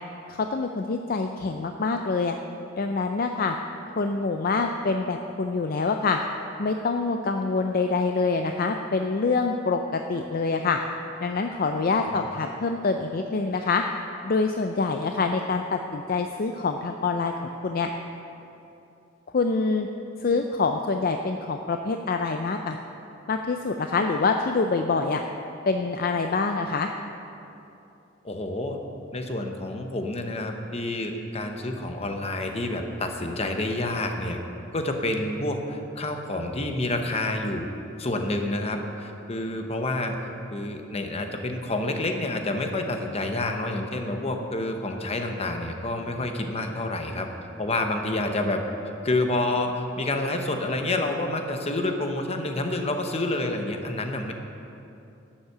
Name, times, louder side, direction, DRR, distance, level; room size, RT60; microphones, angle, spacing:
voice 1, 0.3-2.4 2.8-3.6 4.0-6.2 6.6-10.8 11.2-13.8 14.2-17.3 17.6-17.9 19.3-19.9 20.2-22.8 23.3-25.2 25.7-26.9, left 4 dB, 50° left, 5 dB, 0.5 m, -25 dB
voice 2, 28.2-28.8 29.1-34.4 34.7-37.7 38.0-40.2 40.5-47.3 47.6-48.6 49.0-54.3, left 2 dB, 35° left, 4 dB, 0.9 m, -28 dB
11.5 x 7.4 x 6.7 m, 2.8 s
head